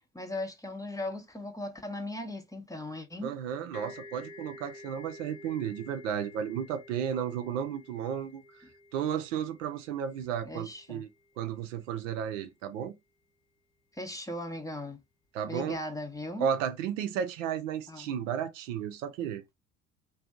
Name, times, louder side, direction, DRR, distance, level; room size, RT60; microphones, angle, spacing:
voice 1, 0.1-3.4 10.4-11.0 13.9-15.0 15.5-16.5 17.9-18.1, left 1 dB, 10° left, 0.6 m, -38 dB
voice 2, 3.2-8.4 8.9-11.1 11.4-12.9 15.3-15.8 16.4-19.4, right 8 dB, 75° right, 0.6 m, -33 dB
sound 1, 3.7-11.3, left 2 dB, 70° left, 1.2 m, -51 dB
2.5 x 2.3 x 2.4 m
figure-of-eight pair, 55°, 39 cm